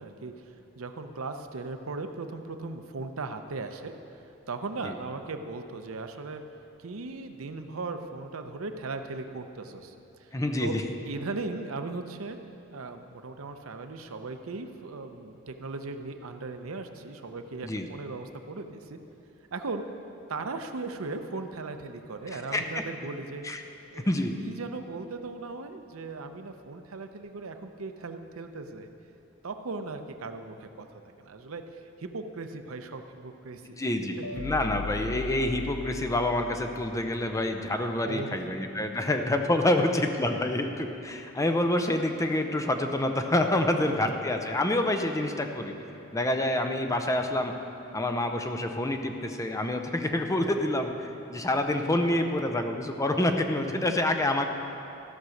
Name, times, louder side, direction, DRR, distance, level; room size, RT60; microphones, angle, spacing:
voice 1, 0.0-4.2 4.5-6.4 6.8-9.9 10.2-10.3 10.6-10.8 11.0-12.4 12.7-19.0 19.5-19.8 20.3-23.4 23.9-24.1 24.4-28.9 29.4-33.8 38.0-38.5 39.0-39.1 39.8-39.9 40.3-40.4 53.9-54.0, right 3 dB, 85° right, 7 dB, 0.7 m, -38 dB
voice 2, 10.3-10.8 17.6-17.9 22.3-22.6 23.4-23.6 23.9-24.3 33.8-45.7 46.1-47.5 47.9-54.5, left 1 dB, 15° left, 5 dB, 0.6 m, -27 dB
sound 1, 34.2-37.4, left 4 dB, 65° left, 0.5 m, -39 dB
15.0 x 6.0 x 6.4 m, 2.8 s
head